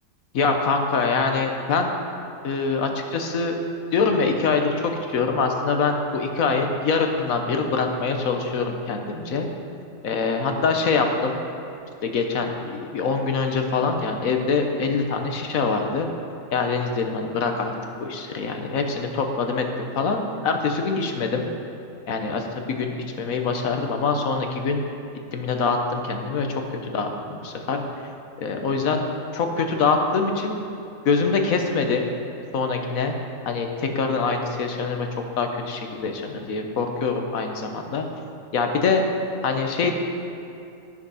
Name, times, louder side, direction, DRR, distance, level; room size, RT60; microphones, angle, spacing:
voice 1, 0.3-1.9 2.4-3.6 3.9-9.5 10.0-11.4 12.0-16.1 16.5-17.7 18.0-21.5 22.1-24.8 25.3-27.8 28.4-29.0 29.3-30.6 31.0-32.1 32.5-33.1 33.4-35.1 35.4-38.0 38.5-39.0 39.4-39.9, left 4 dB, 60° left, 4 dB, 1.3 m, -24 dB
12.5 x 7.1 x 5.6 m, 2.7 s
omnidirectional pair, 1.8 m